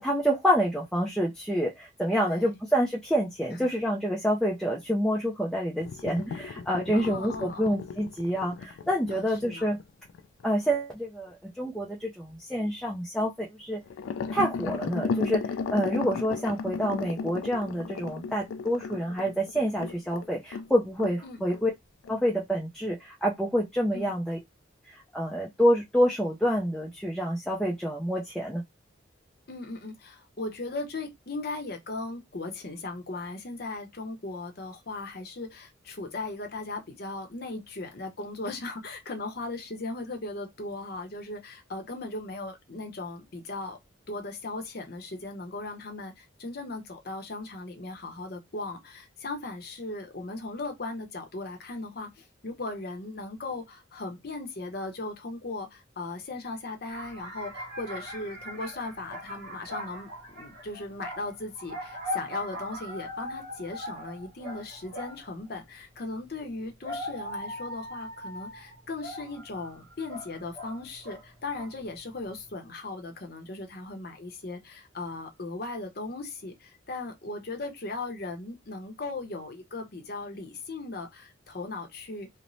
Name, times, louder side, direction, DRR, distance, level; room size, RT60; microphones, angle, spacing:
voice 1, 0.0-9.8 10.4-13.8 14.3-21.7 22.1-24.4 24.9-28.6, equal, 5° left, 0.4 m, -27 dB
voice 2, 2.2-2.5 3.6-3.7 6.9-7.8 9.1-9.7 21.2-21.4 23.9-24.1 29.5-43.8 44.1-82.3, left 2 dB, 50° left, 0.7 m, -38 dB
sound 1, 5.8-10.5 13.9-20.7 21.0-21.2 21.5-21.6 22.0-22.1, left 5 dB, 80° left, 0.3 m, -35 dB
sound 2, 56.9-65.3 66.4-71.2 71.5-71.9, equal, 75° right, 1.5 m, -40 dB
3.0 x 2.0 x 2.5 m
head